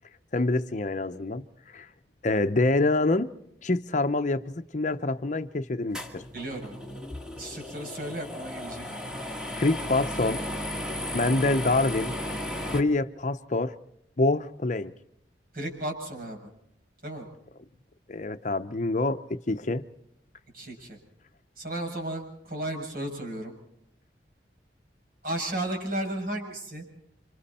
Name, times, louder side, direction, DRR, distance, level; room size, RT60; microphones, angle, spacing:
voice 1, 0.3-1.4 1.7-1.9 2.2-3.3 3.6-6.2 9.5-10.4 11.1-12.1 12.7-13.7 14.2-14.9 18.1-19.8, left 2 dB, 40° left, 0.8 m, -26 dB
sound 1, 5.9-12.8, left 1 dB, 5° right, 2.2 m, -35 dB
voice 2, 6.3-7.0 7.4-8.8 15.5-16.4 17.0-17.3 20.5-21.0 21.6-23.5 25.2-26.8, right 1 dB, 50° right, 7.1 m, -34 dB
29.5 x 26.0 x 4.3 m
head